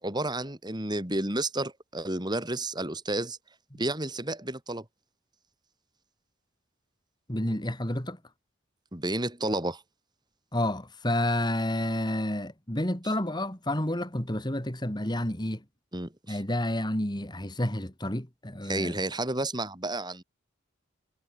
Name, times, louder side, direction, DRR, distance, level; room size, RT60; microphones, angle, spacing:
voice 1, 0.0-3.4 3.8-4.8 8.9-9.8 15.9-16.4 18.6-20.2, right 2 dB, 20° right, 4.5 m, -31 dB
voice 2, 7.3-8.2 10.5-15.6 16.3-18.9, left 1 dB, 20° left, 2.7 m, -30 dB
head